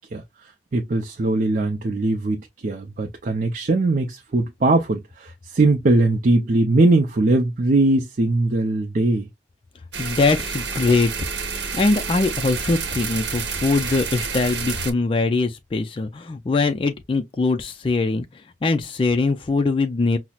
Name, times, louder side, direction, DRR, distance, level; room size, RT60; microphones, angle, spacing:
voice 1, 0.1-9.3, right 2 dB, 45° right, 0.5 m, -20 dB
sound 1, 9.9-14.9, right 5 dB, 65° right, 0.9 m, -29 dB
voice 2, 10.0-11.1 11.7-20.2, left 3 dB, 30° left, 0.3 m, -22 dB
5.6 x 2.0 x 2.3 m
head